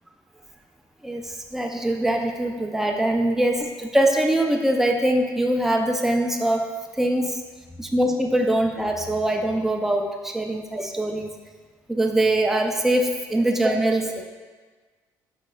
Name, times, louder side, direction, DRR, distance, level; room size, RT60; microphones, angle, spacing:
voice 1, 1.0-6.7 7.0-7.4 7.8-11.4 11.9-14.2, right 1 dB, 5° right, 2 dB, 0.5 m, -23 dB
4.5 x 3.1 x 3.8 m, 1.4 s
hypercardioid pair, 55°, 10 cm